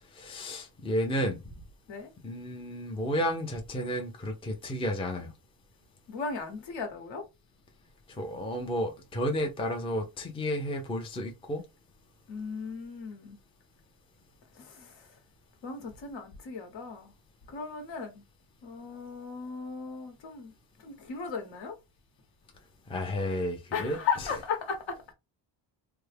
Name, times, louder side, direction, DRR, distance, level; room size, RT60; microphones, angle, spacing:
voice 1, 0.1-1.4 2.2-5.3 8.1-11.6 22.9-24.0, equal, 10° left, 0.5 m, -32 dB
voice 2, 6.1-7.2 12.3-13.4 14.5-15.2 15.6-17.1 17.5-18.2 18.6-20.5 20.8-21.8 23.7-25.1, left 5 dB, 65° left, 1.1 m, -36 dB
3.4 x 2.1 x 3.2 m
wide cardioid pair, 150°, 48 cm